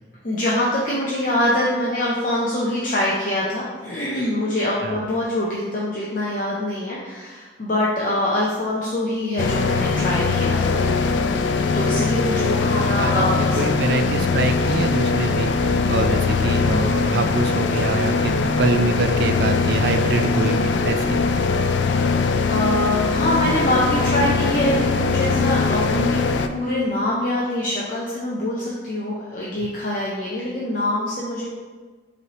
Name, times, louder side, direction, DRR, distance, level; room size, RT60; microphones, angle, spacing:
voice 1, 0.2-10.9 11.7-14.0 22.5-26.2 26.5-31.5, left 1 dB, 50° left, -5 dB, 0.6 m, -24 dB
sound 1, 9.4-26.5, left 4 dB, 85° left, 0.3 m, -21 dB
voice 2, 12.8-21.2, right 3 dB, 60° right, 7 dB, 0.4 m, -25 dB
5.3 x 3.2 x 3.0 m, 1.4 s
head